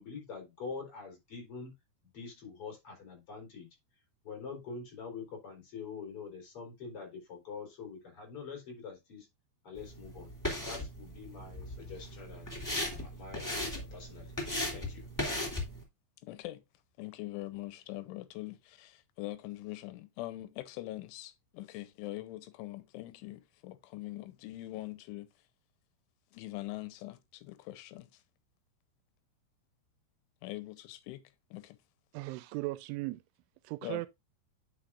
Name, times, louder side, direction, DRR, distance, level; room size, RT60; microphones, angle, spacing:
voice 1, 0.0-1.7 2.1-3.7 4.2-9.3 9.6-10.3 10.7-14.3 14.7-15.0, left 5 dB, 30° left, 3.8 m, -45 dB
sound 1, 9.8-15.8, left 1 dB, 10° left, 1.2 m, -38 dB
voice 2, 16.2-16.6 17.0-25.3 26.3-28.2 30.4-31.2 31.5-31.8 33.8-34.1, left 17 dB, 85° left, 3.1 m, -43 dB
voice 3, 32.1-33.2 33.6-34.1, right 21 dB, 85° right, 3.0 m, -37 dB
9.8 x 6.4 x 2.4 m
omnidirectional pair, 5.5 m